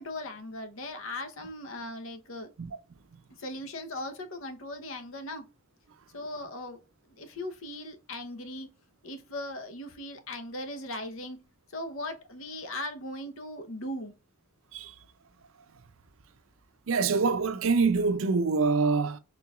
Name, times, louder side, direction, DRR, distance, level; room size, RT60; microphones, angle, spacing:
voice 1, 0.0-2.5 3.4-5.5 6.1-6.8 7.1-8.7 9.0-11.4 11.7-14.1, left 1 dB, 80° left, 0.9 m, -38 dB
voice 2, 16.9-19.2, right 4 dB, 80° right, 0.5 m, -25 dB
4.5 x 3.8 x 2.4 m
head